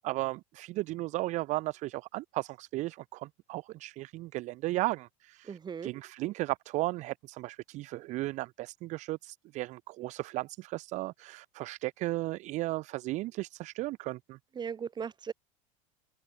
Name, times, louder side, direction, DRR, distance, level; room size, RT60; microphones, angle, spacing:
voice 1, 0.0-14.4, right 19 dB, 45° right, 0.4 m, -35 dB
voice 2, 5.4-5.9 14.6-15.3, right 7 dB, 25° right, 1.2 m, -37 dB
open air
hypercardioid pair, 85°, 17 cm